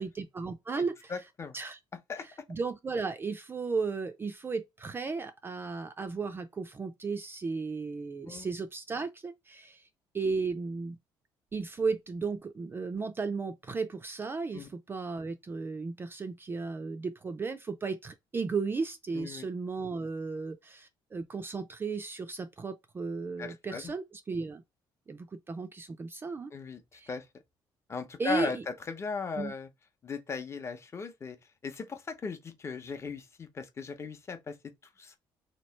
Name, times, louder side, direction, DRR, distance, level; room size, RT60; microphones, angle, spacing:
voice 1, 0.0-1.1 1.5-1.8 2.5-9.9 10.1-11.0 11.5-24.6 25.1-26.5 26.9-27.1 28.2-28.6 29.4-29.5, right 4 dB, 25° right, 0.4 m, -35 dB
voice 2, 0.8-1.5 2.1-2.2 8.3-8.5 14.5-14.7 19.1-19.5 23.4-23.9 26.5-27.3 27.9-29.7 30.0-31.4 31.6-34.6 35.0-35.2, left 5 dB, 30° left, 0.8 m, -37 dB
3.0 x 2.8 x 4.3 m
cardioid pair, 135°, 9 cm